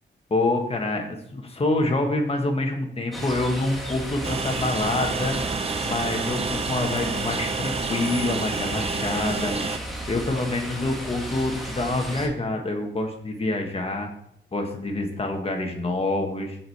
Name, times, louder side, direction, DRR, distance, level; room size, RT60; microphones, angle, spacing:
voice 1, 0.3-5.4 5.8-9.5 10.1-14.1 14.5-16.6, left 2 dB, 30° left, 2 dB, 1.4 m, -26 dB
sound 1, 3.1-12.3, equal, ahead, 1.5 m, -35 dB
Train, 4.2-9.8, right 4 dB, 30° right, 0.5 m, -29 dB
7.8 x 6.3 x 4.2 m, 0.71 s
wide cardioid pair, 145°, 20 cm